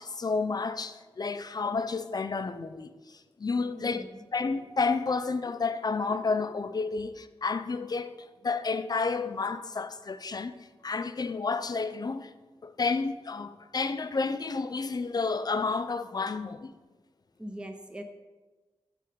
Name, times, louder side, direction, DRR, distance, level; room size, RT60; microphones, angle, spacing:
voice 1, 0.0-2.9 3.4-4.0 4.3-10.5 10.8-12.3 12.6-16.7, left 4 dB, 40° left, 0.4 m, -30 dB
voice 2, 3.7-4.2 17.4-18.0, equal, 10° right, 0.6 m, -41 dB
6.3 x 3.3 x 5.2 m
wide cardioid pair, 60°, 10 cm